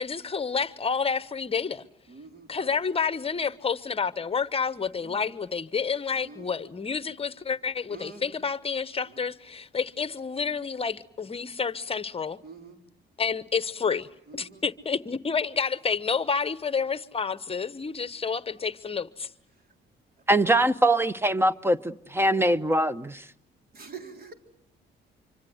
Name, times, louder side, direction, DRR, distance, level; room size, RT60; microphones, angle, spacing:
voice 1, 0.0-1.8 2.5-12.4 13.2-14.1 14.3-19.3, left 5 dB, 30° left, 1.1 m, -29 dB
voice 2, 2.1-2.9 5.0-5.4 6.1-6.7 7.9-8.4 9.0-9.2 12.4-12.8 14.3-14.6 19.5-19.7 20.3-20.5 23.7-24.3, right 4 dB, 50° right, 3.8 m, -46 dB
voice 3, 20.3-23.2, right 1 dB, 10° right, 1.1 m, -23 dB
26.0 x 25.5 x 8.0 m
cardioid pair, 90°, 20 cm